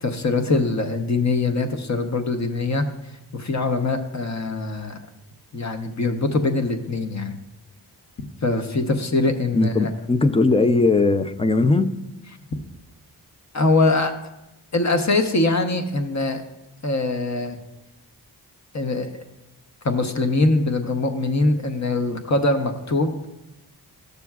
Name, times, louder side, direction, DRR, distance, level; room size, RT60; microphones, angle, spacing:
voice 1, 0.0-2.8 3.3-5.0 5.5-7.4 8.4-9.9 13.5-14.1 14.7-16.4 16.8-17.6 18.7-19.2 19.8-23.2, left 2 dB, 40° left, 0.8 m, -22 dB
voice 2, 9.5-11.9, left 3 dB, 15° left, 0.4 m, -19 dB
12.0 x 6.8 x 2.3 m
cardioid pair, 45°, 41 cm